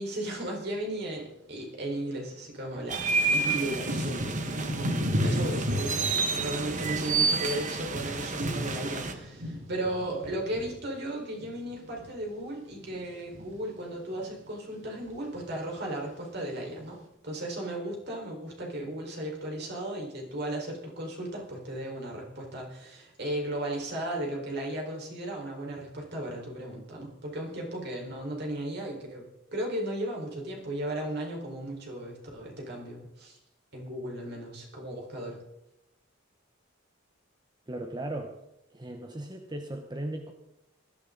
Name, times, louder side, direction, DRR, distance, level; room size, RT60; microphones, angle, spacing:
voice 1, 0.0-17.0 17.2-29.3 29.5-33.4 33.7-35.4, right 1 dB, 55° right, -1 dB, 4.8 m, -35 dB
Thunder / Rain, 2.1-2.2 2.9-12.4 12.7-13.6 14.1-14.5 14.7-15.6 16.2-16.3, equal, 80° right, 3.3 m, -34 dB
sound 1, 2.9-9.1, right 4 dB, 40° right, 1.5 m, -30 dB
voice 2, 37.7-38.3 38.7-40.3, right 1 dB, 20° right, 4 dB, 1.1 m, -37 dB
19.5 x 13.5 x 4.0 m, 0.85 s
head